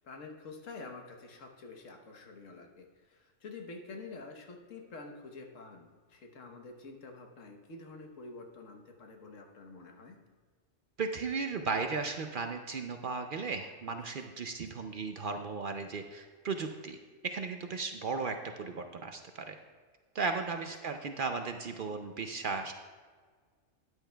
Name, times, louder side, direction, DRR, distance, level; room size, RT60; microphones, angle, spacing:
voice 1, 0.0-10.2 20.5-20.9, left 3 dB, 85° left, 3 dB, 1.4 m, -48 dB
voice 2, 11.0-17.0 17.2-19.6 20.1-22.7, right 4 dB, 55° right, 6 dB, 0.6 m, -36 dB
13.5 x 9.7 x 2.3 m, 1.6 s
omnidirectional pair, 1.3 m